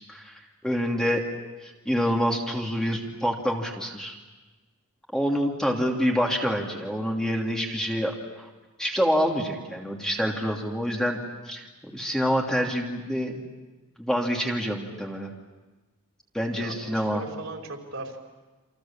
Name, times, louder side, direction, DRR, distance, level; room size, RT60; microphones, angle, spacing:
voice 1, 0.1-1.2 1.6-4.2 5.1-8.5 8.8-11.2 11.5-11.6 11.9-13.4 14.0-15.3 16.3-17.2, equal, 5° left, 0 dB, 2.9 m, -27 dB
voice 2, 16.4-18.2, right 2 dB, 65° right, 2 dB, 4.9 m, -38 dB
28.5 x 27.5 x 7.5 m, 1.2 s
head